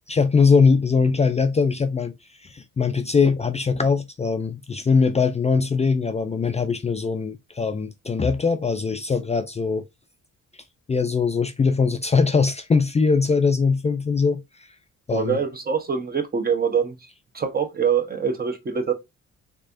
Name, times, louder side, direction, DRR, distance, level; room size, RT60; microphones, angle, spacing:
voice 1, 0.1-2.1 2.4-9.8 10.9-14.4 15.1-15.4, left 5 dB, 20° left, 0.4 m, -21 dB
voice 2, 15.1-17.0 17.3-18.9, right 6 dB, 30° right, 1.0 m, -24 dB
3.5 x 3.2 x 2.6 m
cardioid pair, 90°, 30 cm